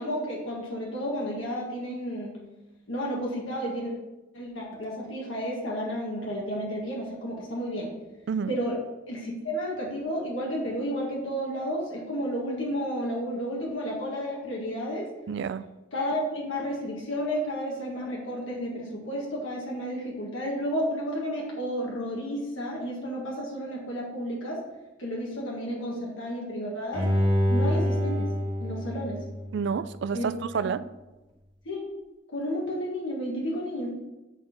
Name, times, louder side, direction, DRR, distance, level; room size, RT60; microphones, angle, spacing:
voice 1, 0.0-2.3 2.9-3.9 4.3-7.9 8.5-8.8 9.1-15.1 15.9-24.6 25.0-27.1 27.5-28.3 28.6-29.2 30.1-30.7 31.6-31.8 32.3-33.9, equal, 90° left, 1.7 m, -32 dB
voice 2, 15.3-15.7 29.5-30.9, right 6 dB, 65° right, 0.4 m, -29 dB
Bowed string instrument, 26.9-30.0 30.5-30.6, equal, 25° right, 1.6 m, -27 dB
8.5 x 4.4 x 5.1 m
head